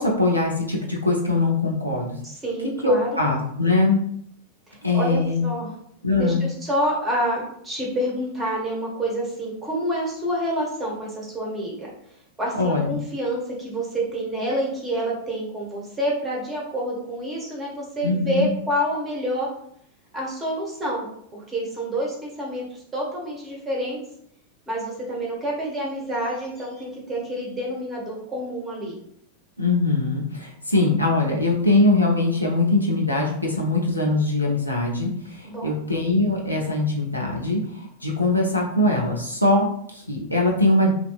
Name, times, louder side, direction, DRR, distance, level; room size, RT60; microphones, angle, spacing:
voice 1, 0.0-2.2 2.8-4.0 4.8-5.4 6.0-6.4 12.6-12.9 18.0-18.5 29.6-40.9, left 2 dB, 85° left, -2 dB, 0.4 m, -22 dB
voice 2, 2.2-3.2 4.7-5.7 6.2-11.9 12.4-19.5 20.1-24.0 24.7-29.0 35.4-35.9, equal, 15° right, -3 dB, 1.0 m, -28 dB
2.6 x 2.4 x 2.3 m, 0.69 s
figure-of-eight pair, 90°, 0 cm